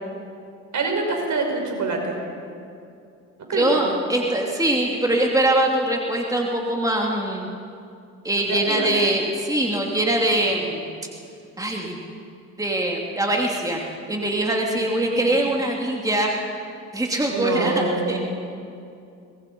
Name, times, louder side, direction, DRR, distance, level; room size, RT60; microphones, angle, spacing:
voice 1, 0.7-2.2 3.5-3.8 8.5-8.9 14.6-15.3 17.3-18.2, right 3 dB, 50° right, 2 dB, 5.5 m, -26 dB
voice 2, 3.5-7.5 8.2-10.9 11.6-12.0 12.6-16.4 16.9-18.2, right 1 dB, 10° right, 0 dB, 2.9 m, -23 dB
23.5 x 20.0 x 5.4 m, 2.5 s
hypercardioid pair, 55°, 37 cm